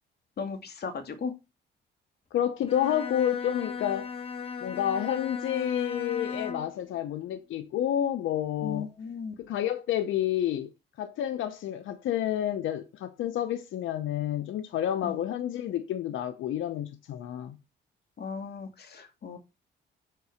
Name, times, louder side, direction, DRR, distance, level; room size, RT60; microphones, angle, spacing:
voice 1, 0.4-1.3 8.6-9.3 15.0-15.2 18.2-19.4, left 5 dB, 55° left, 2.4 m, -36 dB
voice 2, 2.3-4.1 4.6-8.9 9.4-10.7 11.0-17.6, left 11 dB, 80° left, 0.9 m, -29 dB
Bowed string instrument, 2.6-6.8, left 5 dB, 30° left, 1.5 m, -37 dB
7.8 x 4.6 x 6.5 m
cardioid pair, 90°, 20 cm